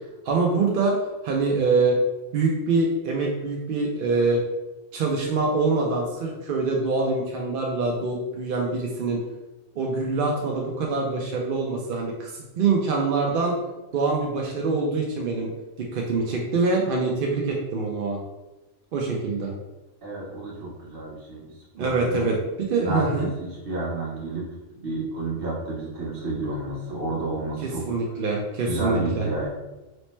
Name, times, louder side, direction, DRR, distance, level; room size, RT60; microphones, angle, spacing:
voice 1, 0.2-1.0 1.2-2.0 2.3-4.4 4.9-9.2 9.8-13.6 13.9-15.5 15.8-18.2 18.9-19.5 21.7-23.3 27.9-29.3, right 3 dB, 65° right, -1 dB, 0.5 m, -24 dB
voice 2, 20.0-22.3 22.8-24.4 24.8-27.8 28.1-28.3 28.6-29.5, right 2 dB, 45° right, -7 dB, 1.3 m, -31 dB
3.1 x 2.1 x 4.1 m, 1.0 s
omnidirectional pair, 1.4 m